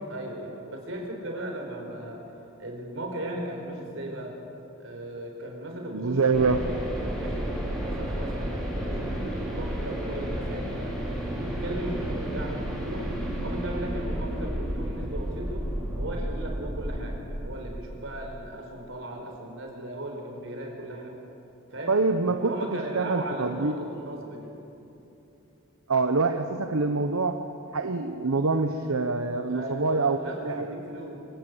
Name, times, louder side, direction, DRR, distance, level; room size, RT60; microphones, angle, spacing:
voice 1, 0.0-2.2 2.6-4.4 4.8-6.2 7.0-10.9 11.4-13.1 13.4-15.7 15.9-21.1 21.7-22.0 22.2-24.5 29.5-31.2, right 1 dB, 65° right, 1 dB, 4.8 m, -37 dB
voice 2, 5.9-6.7 21.9-23.9 25.9-27.4 27.7-30.7, right 3 dB, 80° right, 7 dB, 1.0 m, -25 dB
sound 1, 6.3-17.2, equal, ahead, 5.2 m, -32 dB
25.5 x 18.0 x 8.0 m, 2.8 s
head